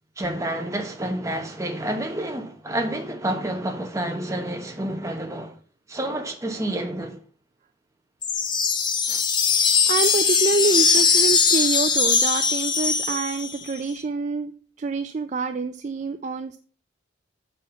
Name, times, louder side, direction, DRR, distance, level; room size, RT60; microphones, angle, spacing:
voice 1, 0.2-5.6 5.9-7.2 9.1-9.2, right 1 dB, 15° right, 1.0 m, -29 dB
sound 1, 8.2-13.7, left 5 dB, 20° left, 0.7 m, -20 dB
voice 2, 9.6-14.5 14.8-16.6, right 4 dB, 35° right, 0.3 m, -26 dB
6.9 x 4.4 x 5.6 m
head